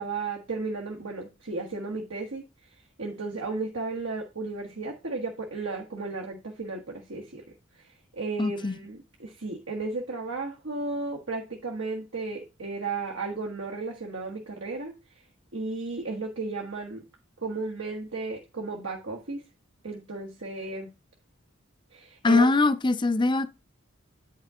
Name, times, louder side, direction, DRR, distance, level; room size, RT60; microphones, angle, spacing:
voice 1, 0.0-2.4 3.0-7.4 7.8-14.9 15.5-17.0 17.4-19.4 19.8-20.9 21.9-22.5, right 3 dB, 80° right, 1.4 m, -34 dB
voice 2, 8.4-8.7 22.2-23.6, left 3 dB, 25° left, 0.5 m, -22 dB
9.0 x 5.6 x 3.6 m
head